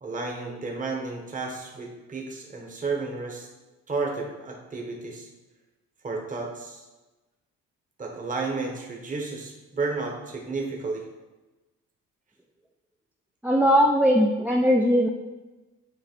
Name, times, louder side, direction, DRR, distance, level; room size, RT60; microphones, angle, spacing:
voice 1, 0.0-3.5 3.9-5.3 6.0-6.8 8.0-11.0, right 3 dB, 25° right, 0 dB, 1.1 m, -32 dB
voice 2, 13.4-15.1, equal, 5° right, 0 dB, 0.5 m, -19 dB
7.6 x 2.9 x 4.4 m, 1.1 s
cardioid pair, 90°, 30 cm